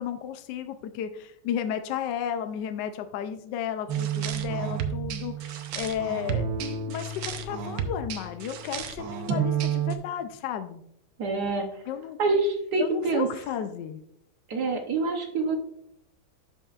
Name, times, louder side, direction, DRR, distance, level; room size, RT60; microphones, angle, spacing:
voice 1, 0.0-10.8 11.9-12.2 12.8-14.0, left 9 dB, 75° left, 8 dB, 1.1 m, -33 dB
sound 1, 3.9-10.0, right 7 dB, 85° right, 1.5 m, -30 dB
voice 2, 11.2-11.6 12.2-13.3 14.5-15.6, right 3 dB, 60° right, 3 dB, 1.3 m, -26 dB
12.0 x 5.4 x 2.4 m, 0.76 s
omnidirectional pair, 2.1 m